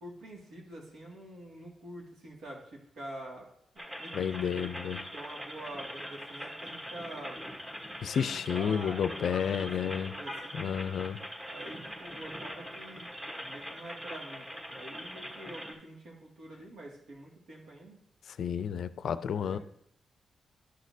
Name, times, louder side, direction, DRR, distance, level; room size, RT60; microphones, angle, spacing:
voice 1, 0.0-3.5 4.0-4.7 5.1-7.4 8.0-10.7 11.5-13.1 13.4-14.4 14.7-18.0 19.3-19.6, right 1 dB, 90° right, -2 dB, 2.1 m, -46 dB
sound 1, 3.8-15.7, equal, 10° right, 1.1 m, -42 dB
voice 2, 4.1-5.0 8.0-10.1 10.5-11.2 18.3-19.6, left 8 dB, 70° left, 14 dB, 0.4 m, -31 dB
11.5 x 6.4 x 2.7 m, 0.73 s
wide cardioid pair, 120°, 0 cm